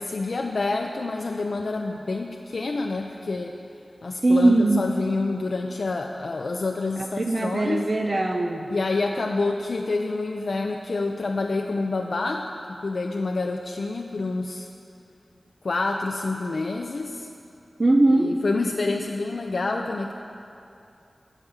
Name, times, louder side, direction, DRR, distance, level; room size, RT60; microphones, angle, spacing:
voice 1, 0.0-3.6 4.0-7.8 8.7-14.7 15.6-17.3 18.2-20.1, left 3 dB, 70° left, 2 dB, 0.4 m, -28 dB
voice 2, 4.2-4.8 7.0-8.7 17.8-18.4, right 2 dB, 40° right, 4 dB, 0.5 m, -20 dB
8.8 x 6.1 x 7.8 m, 2.7 s
wide cardioid pair, 90°, 0 cm